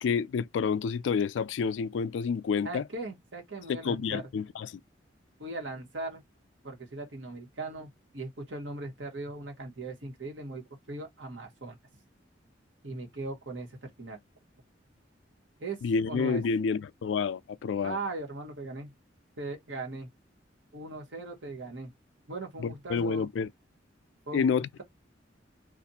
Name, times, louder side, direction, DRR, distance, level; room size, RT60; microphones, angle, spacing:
voice 1, 0.0-2.8 3.8-4.8 15.8-18.0 22.6-23.5 24.3-24.7, left 5 dB, 75° left, 0.3 m, -29 dB
voice 2, 2.6-4.2 5.4-6.2 6.6-11.8 12.8-14.2 15.6-15.8 16.1-16.4 17.8-18.9 19.4-20.1 20.7-21.9 22.3-23.3 24.3-24.8, right 2 dB, 75° right, 1.3 m, -39 dB
2.5 x 2.5 x 4.0 m
head